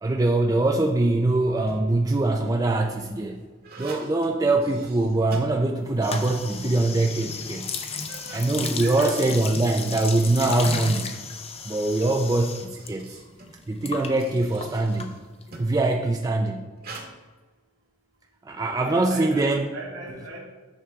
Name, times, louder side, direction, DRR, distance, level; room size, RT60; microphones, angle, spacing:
voice 1, 0.0-3.4 3.8-7.7 8.3-11.1 11.7-13.2 13.7-15.2 15.6-16.7 18.5-19.7, right 2 dB, 20° right, 2 dB, 0.4 m, -23 dB
sound 1, 1.5-2.1 2.8-6.2 6.5-6.6 7.3-7.4 7.9-10.4 11.6-15.9 16.8-17.1, right 3 dB, 50° right, 1.4 m, -46 dB
sound 2, 6.0-12.9 13.2-15.6, left 5 dB, 30° left, 0.6 m, -34 dB
voice 2, 8.8-9.2 18.8-19.5 19.7-20.4, right 2 dB, 65° right, -1 dB, 2.2 m, -37 dB
8.8 x 6.3 x 3.5 m, 1.4 s
head